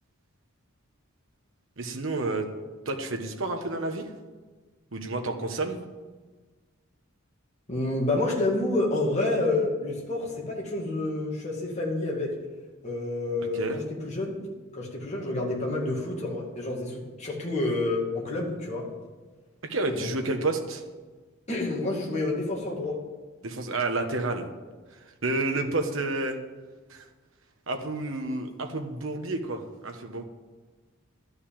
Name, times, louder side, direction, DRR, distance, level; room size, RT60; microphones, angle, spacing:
voice 1, 1.8-2.5 2.8-4.1 4.9-5.8 13.5-13.8 19.7-20.8 23.4-24.5 25.2-26.4 26.9-27.0 27.7-30.2, right 2 dB, 65° right, 5 dB, 1.3 m, -30 dB
voice 2, 7.7-12.3 12.8-14.4 14.7-18.8 19.9-20.1 21.5-23.0, left 2 dB, 30° left, -3 dB, 2.4 m, -28 dB
12.0 x 5.5 x 8.8 m, 1.3 s
head